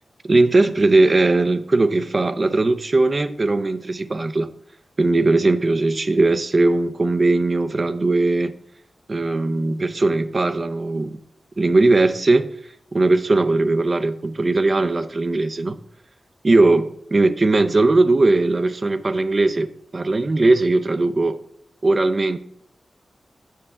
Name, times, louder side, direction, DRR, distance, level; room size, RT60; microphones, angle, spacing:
voice 1, 0.2-4.5 5.0-8.5 9.1-11.2 11.6-12.5 12.9-15.8 16.4-19.7 19.9-21.4 21.8-22.4, right 2 dB, 35° right, 0.5 m, -19 dB
9.7 x 3.6 x 6.8 m
wide cardioid pair, 150°, 0 cm